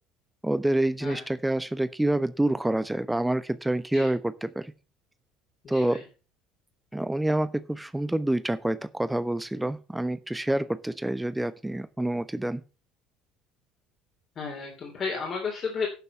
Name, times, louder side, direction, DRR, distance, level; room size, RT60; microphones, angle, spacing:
voice 1, 0.4-4.7 5.7-6.0 6.9-12.6, right 1 dB, 5° right, 14 dB, 1.0 m, -27 dB
voice 2, 5.6-6.0 14.4-15.9, left 5 dB, 40° left, 1 dB, 3.1 m, -33 dB
12.0 x 6.8 x 5.7 m, 0.33 s
figure-of-eight pair, 60°, 0 cm